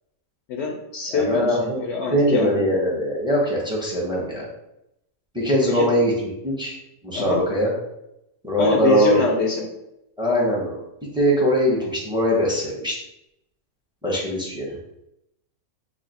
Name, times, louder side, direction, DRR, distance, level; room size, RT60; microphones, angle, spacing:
voice 1, 0.5-2.7 5.7-5.9 7.1-7.4 8.6-9.7, left 4 dB, 65° left, -1 dB, 0.7 m, -24 dB
voice 2, 1.1-1.8 2.1-4.5 5.3-6.1 6.4-6.7 7.0-7.7 8.4-9.2 10.2-10.8 11.1-12.9 14.0-14.7, equal, 5° right, -4 dB, 0.6 m, -21 dB
3.1 x 2.7 x 4.0 m, 0.84 s
omnidirectional pair, 1.7 m